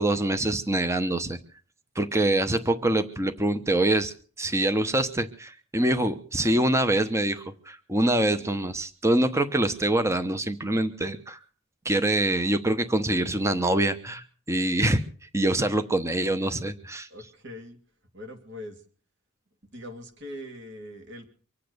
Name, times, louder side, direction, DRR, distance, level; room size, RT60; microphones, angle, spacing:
voice 1, 0.0-1.4 1.9-11.4 11.8-15.0 15.3-17.1, right 1 dB, 15° right, 10 dB, 1.0 m, -25 dB
voice 2, 17.1-17.8 18.1-18.8 19.7-21.3, left 1 dB, 55° right, 5 dB, 2.6 m, -41 dB
24.5 x 8.5 x 6.8 m, 0.42 s
head